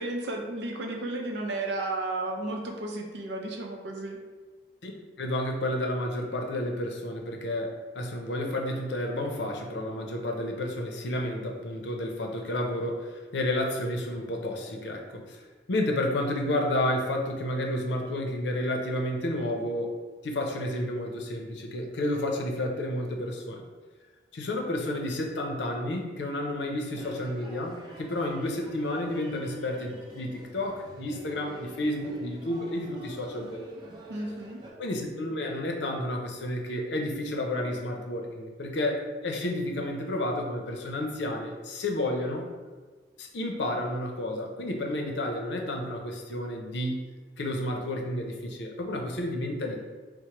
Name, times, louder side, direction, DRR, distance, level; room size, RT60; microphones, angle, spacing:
voice 1, 0.0-4.2 34.1-34.6, right 2 dB, 80° right, 1 dB, 0.6 m, -33 dB
voice 2, 5.2-15.4 15.7-19.9 20.2-23.6 24.3-33.8 34.8-42.5 43.2-47.0 47.4-49.8, left 1 dB, 85° left, 2 dB, 0.6 m, -31 dB
sound 1, 26.8-34.7, equal, 25° right, 0.5 m, -46 dB
4.4 x 2.1 x 2.9 m, 1.4 s
head